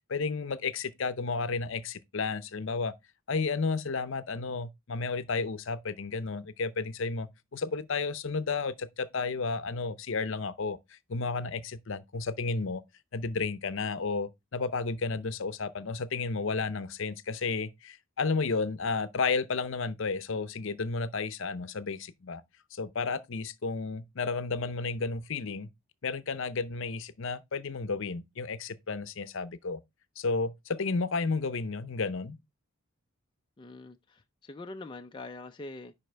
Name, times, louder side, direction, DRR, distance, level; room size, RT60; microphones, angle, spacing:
voice 1, 0.1-2.9 3.3-12.8 13.1-22.4 22.7-25.7 26.0-29.8 30.2-32.4, left 4 dB, 60° left, 0.6 m, -32 dB
voice 2, 33.6-35.9, left 2 dB, 20° left, 0.4 m, -44 dB
10.5 x 4.2 x 3.3 m
head